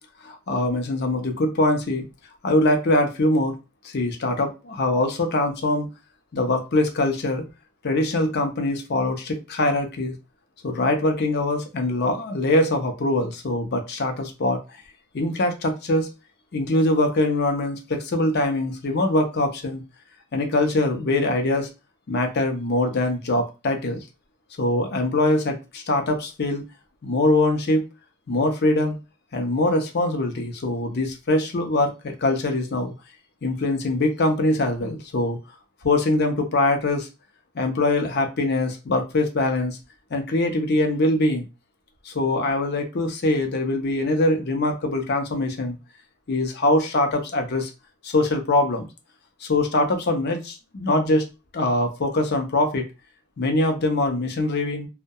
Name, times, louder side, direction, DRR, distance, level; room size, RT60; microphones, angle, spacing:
voice 1, 0.2-2.1 2.4-3.6 3.8-5.9 6.3-7.4 7.8-10.1 10.6-14.8 15.1-16.1 16.5-19.8 20.3-21.7 22.1-24.0 24.6-26.6 27.0-27.9 28.3-29.0 29.3-32.9 33.4-35.4 35.8-37.1 37.5-39.8 40.1-41.5 42.0-45.8 46.3-47.7 48.0-48.9 49.4-51.3 51.5-52.8 53.4-54.9, left 2 dB, 45° left, 5 dB, 0.5 m, -23 dB
2.3 x 2.1 x 2.7 m, 0.28 s
head